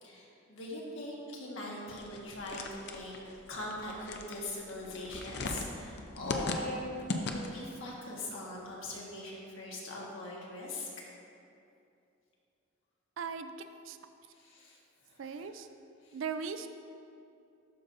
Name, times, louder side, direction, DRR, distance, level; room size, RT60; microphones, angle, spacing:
voice 1, 0.0-6.8 7.3-10.9 14.3-14.8 15.1-15.4 16.0-16.2, left 2 dB, 75° left, -4 dB, 1.5 m, -42 dB
sound 1, 1.9-7.7, left 2 dB, 50° left, 0.5 m, -39 dB
voice 2, 13.2-13.5 13.9-14.0 15.2-15.7 16.1-16.7, right 6 dB, 70° right, 9 dB, 0.4 m, -38 dB
12.0 x 5.3 x 2.7 m, 2.6 s
head